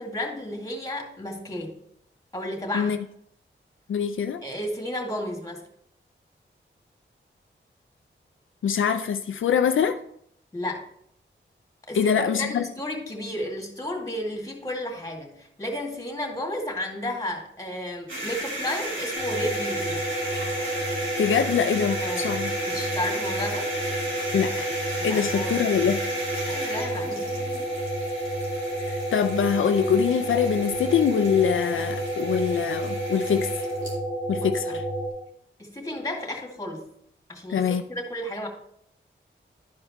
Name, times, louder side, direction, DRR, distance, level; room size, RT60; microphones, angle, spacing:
voice 1, 0.0-1.8 2.3-2.9 4.4-5.6 10.5-10.8 11.9-20.0 22.0-22.3 22.7-23.7 25.0-25.7 26.5-27.3 34.4-34.8 35.6-36.9 37.3-38.5, left 1 dB, 15° left, 1 dB, 2.1 m, -33 dB
voice 2, 3.9-4.4 8.6-10.0 11.9-12.6 21.2-22.5 24.3-24.7 25.0-26.1 26.3-26.5 28.8-33.5 34.3-34.6 37.5-37.8, left 7 dB, 80° left, 8 dB, 0.4 m, -24 dB
sound 1, 18.1-34.0, right 1 dB, 75° right, 2.7 m, -35 dB
sound 2, 19.2-35.1, right 1 dB, 15° right, 2.2 m, -30 dB
12.0 x 5.0 x 3.1 m, 0.70 s
wide cardioid pair, 65°, 20 cm